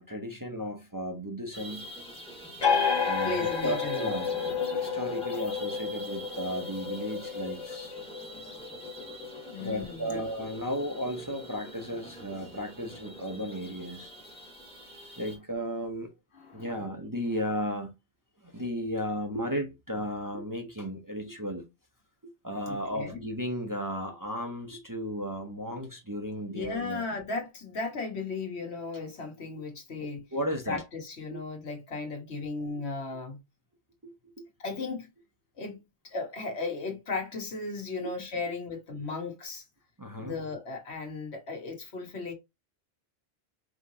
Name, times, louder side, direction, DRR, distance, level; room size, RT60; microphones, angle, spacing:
voice 1, 0.0-1.9 3.0-4.4 4.7-7.9 8.4-8.5 9.6-14.1 15.2-16.1 16.5-17.9 18.4-21.7 22.2-27.1 30.3-30.8 31.3-31.4 34.0-34.5 38.0-38.1 40.0-40.3, equal, 20° right, 0.7 m, -34 dB
sound 1, 1.5-15.4, equal, 5° left, 1.2 m, -45 dB
sound 2, 2.6-9.8, left 6 dB, 30° left, 0.6 m, -31 dB
voice 2, 3.2-4.1 9.1-9.2 9.5-10.2 16.3-16.9 22.7-23.2 26.5-30.3 30.6-33.4 34.6-35.1 35.6-39.6 40.2-42.3, left 3 dB, 70° left, 1.5 m, -36 dB
5.0 x 3.1 x 2.7 m
omnidirectional pair, 1.1 m